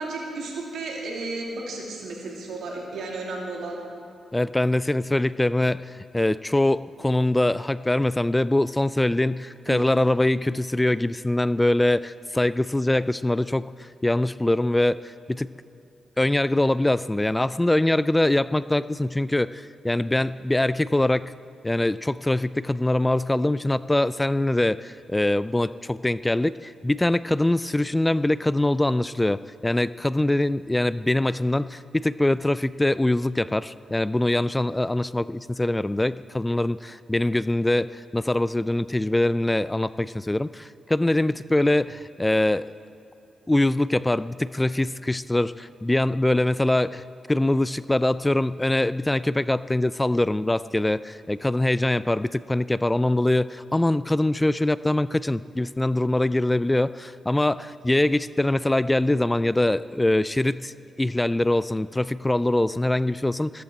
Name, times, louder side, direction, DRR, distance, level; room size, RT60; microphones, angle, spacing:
voice 1, 0.0-3.8 9.7-9.8, right 3 dB, 80° right, -2 dB, 2.8 m, -33 dB
voice 2, 4.3-15.5 16.2-21.3 21.6-42.7 43.5-63.6, left 1 dB, 15° left, 17 dB, 0.3 m, -23 dB
15.0 x 14.0 x 4.4 m, 2.8 s
cardioid pair, 60°, 0 cm